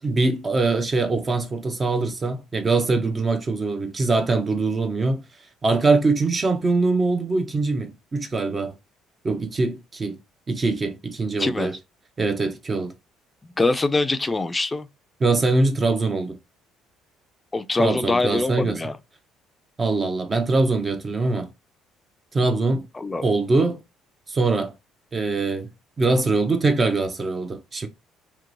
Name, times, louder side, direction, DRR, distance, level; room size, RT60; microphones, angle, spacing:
voice 1, 0.0-5.2 5.6-8.7 9.2-10.2 10.5-11.8 12.2-12.9 15.2-16.4 17.8-18.8 19.8-21.5 22.3-22.9 23.2-23.8 24.3-24.7 25.1-25.7 26.0-27.9, right 3 dB, 35° right, 0.5 m, -23 dB
voice 2, 11.4-11.7 13.6-14.9 17.5-19.0 22.9-23.2, left 3 dB, 20° left, 0.4 m, -23 dB
2.9 x 2.1 x 2.4 m
hypercardioid pair, 60°, 0 cm